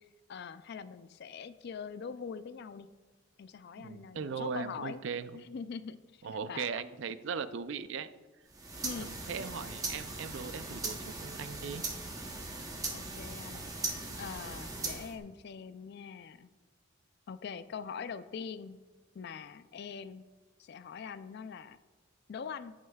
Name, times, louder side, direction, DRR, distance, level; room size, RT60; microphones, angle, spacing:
voice 1, 0.3-2.9 3.4-5.0 5.3-6.2 6.5-6.7 8.8-9.1 12.9-13.7 14.2-16.5 17.3-18.8 19.1-20.2 20.6-21.8 22.3-22.7, left 6 dB, 55° left, 14 dB, 0.3 m, -43 dB
voice 2, 3.8-5.3 6.2-8.1 9.0-11.8, right 6 dB, 65° right, 13 dB, 0.4 m, -38 dB
sound 1, 8.5-15.2, right 3 dB, 15° right, 0.8 m, -39 dB
9.6 x 8.7 x 2.3 m, 1.3 s
head